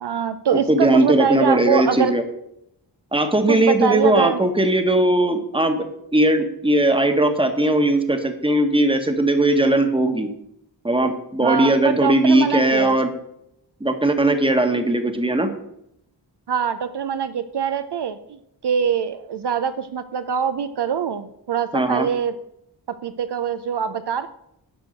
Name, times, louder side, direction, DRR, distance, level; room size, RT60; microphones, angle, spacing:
voice 1, 0.0-2.1 3.5-4.4 11.4-13.0 16.5-22.3 23.0-24.3, right 7 dB, 70° right, 11 dB, 0.7 m, -23 dB
voice 2, 0.7-2.2 3.1-10.3 10.8-13.1 13.8-15.5 21.7-22.1, right 1 dB, 10° right, 7 dB, 1.3 m, -19 dB
12.0 x 4.6 x 7.7 m, 0.78 s
wide cardioid pair, 100°, 42 cm